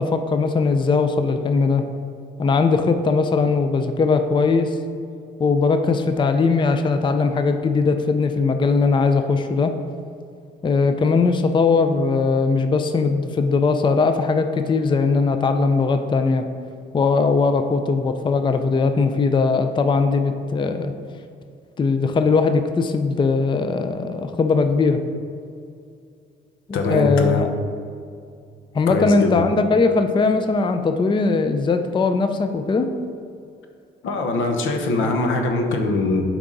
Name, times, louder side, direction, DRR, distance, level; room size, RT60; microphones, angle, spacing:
voice 1, 0.0-1.8 2.4-4.8 5.4-9.8 10.6-16.5 16.9-20.9 21.8-25.0 26.7-27.5 28.7-32.9, left 4 dB, 25° left, 8 dB, 0.4 m, -19 dB
voice 2, 26.7-27.5 28.9-29.3 34.0-36.2, left 3 dB, 80° left, 4 dB, 0.9 m, -22 dB
7.3 x 4.7 x 3.9 m, 2.4 s
cardioid pair, 90°, 20 cm